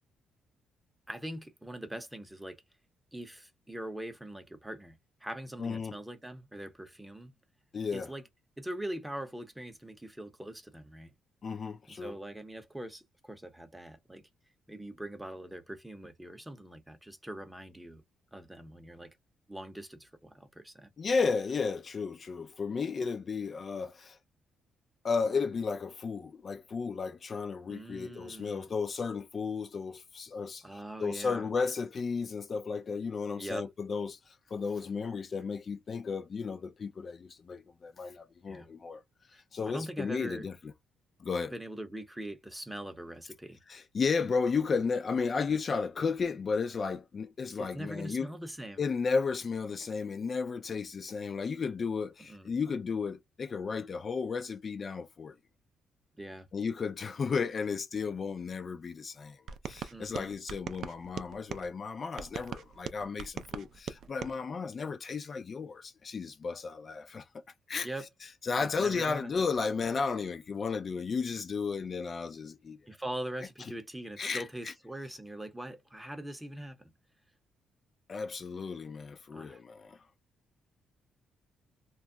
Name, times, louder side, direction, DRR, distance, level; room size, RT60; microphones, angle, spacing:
voice 1, 1.1-2.6 3.1-7.3 7.9-8.2 8.6-11.1 11.9-14.2 14.7-18.0 18.3-19.2 19.5-20.9 27.7-28.7 30.6-31.5 33.4-33.7 38.5-38.7 39.3-40.5 41.5-43.6 47.6-48.8 52.3-52.5 56.2-56.5 59.9-60.3 67.8-68.1 68.6-69.3 72.9-76.9 79.3-79.6, right 1 dB, 5° right, 0.7 m, -42 dB
voice 2, 5.6-6.0 7.7-8.1 11.4-12.1 21.0-24.2 25.0-30.6 31.0-39.0 39.3-40.6 41.2-41.5 43.7-48.3 48.8-55.3 56.5-67.3 67.7-67.9 68.4-72.8 74.2-74.7 78.1-80.0, left 5 dB, 45° left, 0.4 m, -33 dB
sound 1, 59.5-61.7 62.2-64.3, right 7 dB, 65° right, 0.3 m, -41 dB
2.3 x 2.0 x 3.6 m
cardioid pair, 90°, 0 cm